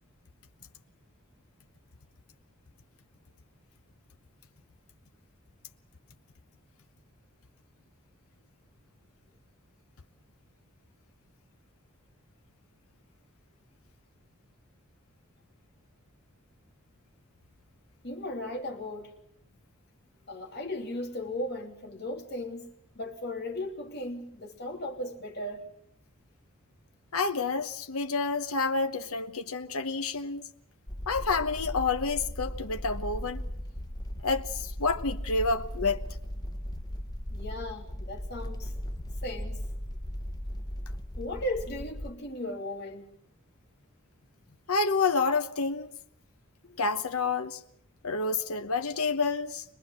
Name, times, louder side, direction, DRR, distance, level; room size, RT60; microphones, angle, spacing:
voice 1, 18.0-19.1 20.3-22.7 22.9-25.7 37.3-38.7 39.2-39.6 41.2-43.1 46.7-46.8, left 1 dB, 50° left, 3.1 m, -36 dB
voice 2, 27.1-30.4 31.1-33.4 34.2-36.0 44.7-45.9 46.8-47.6 48.0-49.6, left 4 dB, 80° left, 1.0 m, -29 dB
sound 1, 30.9-42.1, equal, 20° left, 0.9 m, -37 dB
23.5 x 20.0 x 7.5 m
head